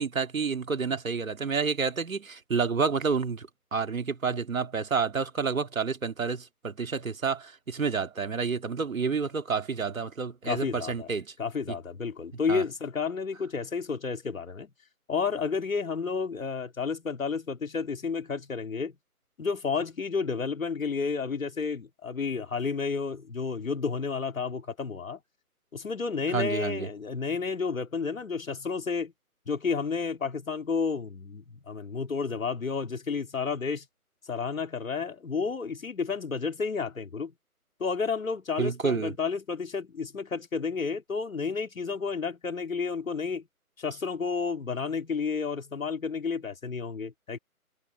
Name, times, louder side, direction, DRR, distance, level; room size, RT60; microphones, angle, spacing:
voice 1, 0.0-11.3 11.7-11.8 12.5-12.6 26.3-26.9 38.6-39.1, right 5 dB, 60° right, 2.1 m, -29 dB
voice 2, 10.4-11.1 11.4-14.7 15.1-19.0 19.4-25.2 25.7-29.1 29.5-33.9 34.3-37.3 37.8-43.5 43.8-47.4, left 5 dB, 60° left, 2.6 m, -31 dB
figure-of-eight pair, 160°, 45 cm